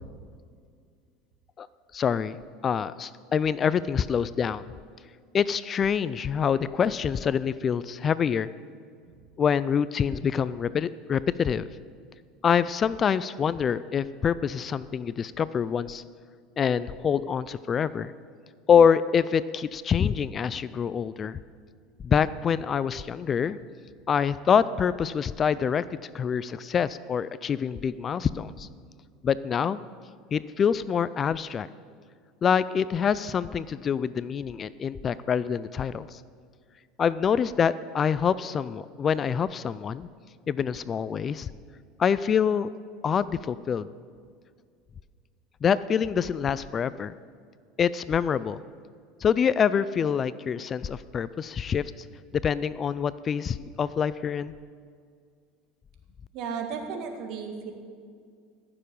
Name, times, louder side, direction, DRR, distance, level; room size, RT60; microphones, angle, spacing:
voice 1, 1.9-2.4 2.6-4.6 5.3-8.5 9.4-11.7 12.4-16.0 16.6-18.1 18.7-21.4 22.0-23.6 24.1-28.7 29.2-29.8 30.3-31.7 32.4-36.2 37.0-40.1 40.5-41.5 42.0-42.7 43.0-43.9 45.6-47.1 47.8-48.6 49.2-51.8 52.4-54.5, left 7 dB, 35° left, 17 dB, 0.3 m, -25 dB
voice 2, 56.3-57.7, right 6 dB, 60° right, 4 dB, 1.7 m, -34 dB
15.0 x 6.8 x 5.4 m, 2.1 s
supercardioid pair, 95°, 0 cm